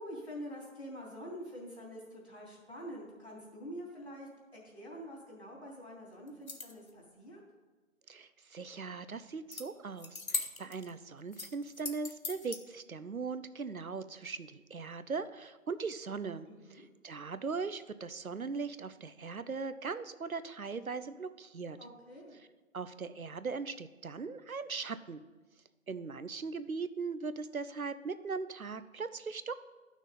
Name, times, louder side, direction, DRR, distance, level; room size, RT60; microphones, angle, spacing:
voice 1, 0.0-7.4 16.5-16.8 21.8-22.4, equal, 50° left, -3 dB, 3.5 m, -46 dB
sound 1, 6.3-6.9 9.5-9.6 10.0-10.9 11.3-12.6, left 3 dB, 80° left, 1.2 m, -39 dB
voice 2, 8.1-21.8 22.4-22.5 22.7-25.2 25.9-29.5, right 4 dB, 90° right, 13 dB, 0.7 m, -39 dB
11.5 x 6.2 x 4.0 m, 1.2 s
figure-of-eight pair, 175°, 41 cm